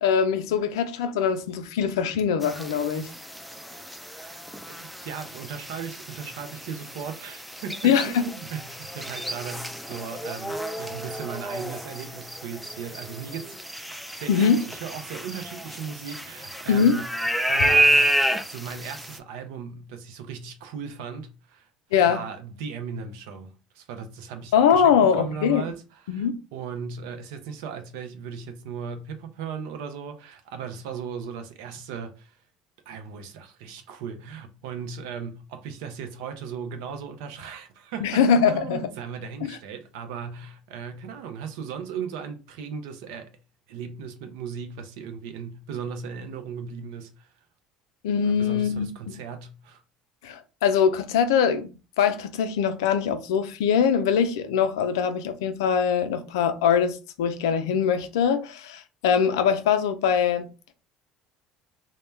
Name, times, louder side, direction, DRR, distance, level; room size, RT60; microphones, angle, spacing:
voice 1, 0.0-3.1 7.8-8.3 14.3-14.6 16.7-17.0 21.9-22.2 24.5-25.6 26.1-26.4 38.0-38.8 39.4-39.5 48.0-49.2 50.2-51.7 52.0-60.5, left 7 dB, 85° left, 0.3 m, -22 dB
sound 1, 2.4-19.2, right 1 dB, ahead, 0.3 m, -29 dB
voice 2, 4.7-17.1 17.5-21.7 22.0-32.4 32.9-43.4 43.7-47.4 48.2-49.8, right 6 dB, 80° right, 0.5 m, -37 dB
2.1 x 2.1 x 3.1 m
hypercardioid pair, 75°, 2 cm